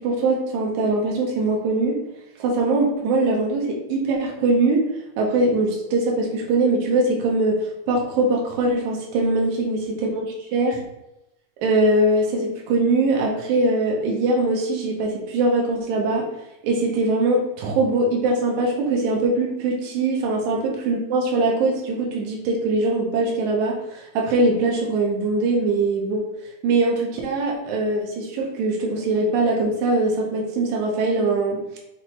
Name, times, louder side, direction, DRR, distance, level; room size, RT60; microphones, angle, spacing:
voice 1, 0.0-2.0 2.4-4.9 5.2-10.2 10.5-10.8 11.6-16.3 16.6-26.2 26.6-31.8, right 2 dB, 90° right, -1 dB, 2.2 m, -22 dB
6.1 x 2.0 x 4.2 m, 0.92 s
omnidirectional pair, 3.3 m